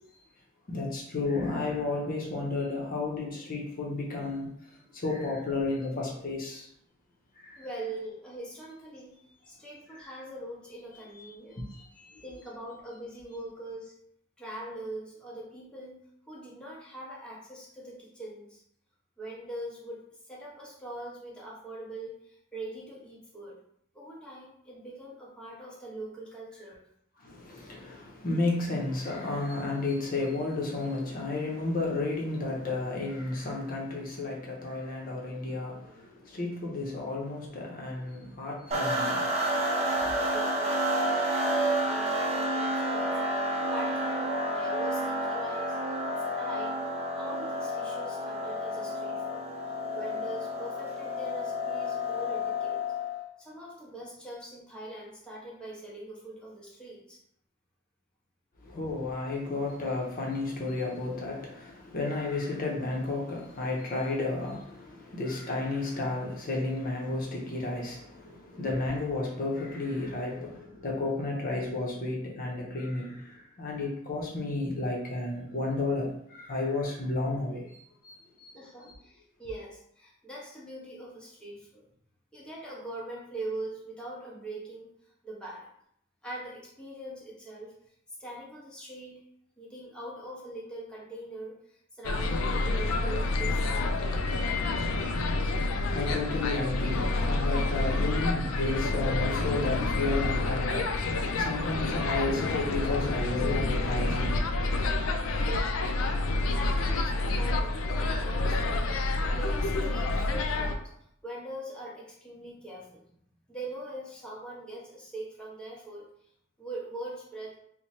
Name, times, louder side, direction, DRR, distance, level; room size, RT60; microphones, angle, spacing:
voice 1, 0.7-6.7 7.4-7.7 9.9-10.1 11.2-11.3 11.7-12.2 27.2-40.0 58.6-78.5 78.8-78.9 95.7-105.0, left 2 dB, 45° left, 0.7 m, -32 dB
voice 2, 7.6-9.1 9.5-11.6 12.2-13.9 14.4-16.0 16.3-18.6 19.2-23.6 23.9-26.8 40.3-41.0 41.5-45.8 46.2-46.8 47.1-49.4 49.9-52.8 53.4-57.2 78.5-81.9 82.3-84.9 85.2-85.7 86.2-87.7 88.2-89.2 89.6-94.5 105.4-106.1 106.5-110.9 111.2-113.2 113.5-116.1 116.6-117.5, right 1 dB, 5° left, 0.7 m, -42 dB
sound 1, 38.7-53.3, equal, 30° right, 0.6 m, -30 dB
sound 2, 92.0-110.8, left 2 dB, 90° left, 0.4 m, -28 dB
3.1 x 2.1 x 4.1 m
head